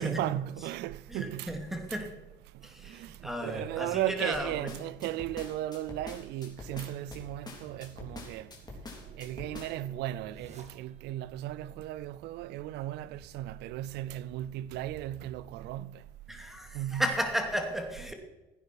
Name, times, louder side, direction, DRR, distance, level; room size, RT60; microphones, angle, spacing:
voice 1, 0.0-1.6 1.9-2.0 2.8-8.5 9.2-16.0 16.7-17.0, right 14 dB, 80° right, 0.4 m, -36 dB
voice 2, 1.1-2.1 2.6-4.9 8.1-8.2 8.6-8.8 16.3-18.1, equal, ahead, 2.6 m, -34 dB
sound 1, 4.3-9.9, left 3 dB, 25° left, 3.6 m, -45 dB
sound 2, 6.8-11.3, right 3 dB, 40° right, 2.4 m, -56 dB
16.0 x 9.4 x 4.6 m
cardioid pair, 110°, 17 cm